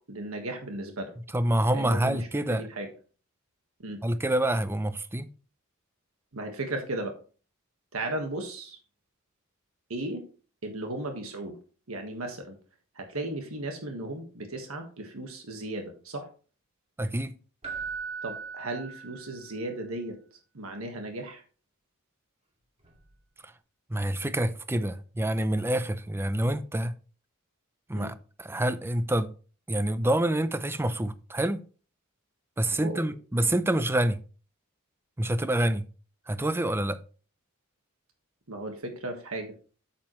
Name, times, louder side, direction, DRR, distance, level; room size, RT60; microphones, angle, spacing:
voice 1, 0.1-1.1 1.7-2.9 3.8-4.0 6.3-7.2 7.9-8.8 9.9-10.2 10.6-11.6 11.9-12.6 12.9-16.3 18.2-20.2 20.5-21.4 27.9-28.1 32.7-33.0 33.4-33.5 38.5-39.5, right 2 dB, 75° right, 1.5 m, -35 dB
voice 2, 1.3-2.7 4.0-5.3 17.0-17.3 23.9-26.9 27.9-29.3 29.7-31.6 32.6-34.2 35.2-35.8 36.3-37.0, right 1 dB, 10° right, 0.5 m, -27 dB
Keyboard (musical), 17.6-19.6 22.8-23.0, right 5 dB, 30° right, 2.1 m, -38 dB
8.6 x 7.6 x 3.1 m
head